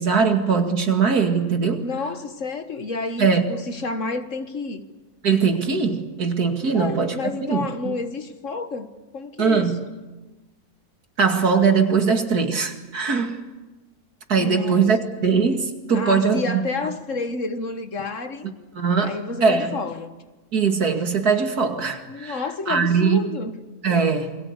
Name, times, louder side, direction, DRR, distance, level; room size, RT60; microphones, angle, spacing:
voice 1, 0.0-1.8 3.2-3.4 5.2-7.2 7.5-7.9 9.4-9.8 11.2-13.4 14.3-16.6 18.8-19.1 19.4-19.8 20.5-23.2 23.8-24.4, right 5 dB, 75° right, 2.8 m, -21 dB
voice 2, 1.8-4.9 6.7-9.7 14.4-15.1 15.9-18.5 19.0-20.1 22.1-23.5, left 3 dB, 55° left, 1.8 m, -30 dB
28.5 x 22.5 x 8.2 m
omnidirectional pair, 1.6 m